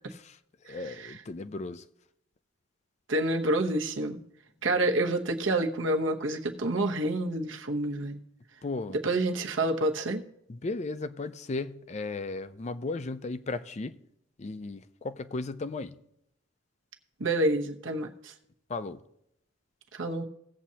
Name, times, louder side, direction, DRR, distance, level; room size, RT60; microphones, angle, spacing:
voice 1, 0.6-1.9 4.7-4.9 8.6-9.0 10.5-14.0 14.4-16.0 18.7-19.0, left 3 dB, 35° left, 0.4 m, -36 dB
voice 2, 3.1-4.2 4.6-8.2 9.0-10.2 17.2-18.3 19.9-20.2, right 1 dB, 85° right, 0.9 m, -28 dB
17.5 x 7.4 x 2.8 m
head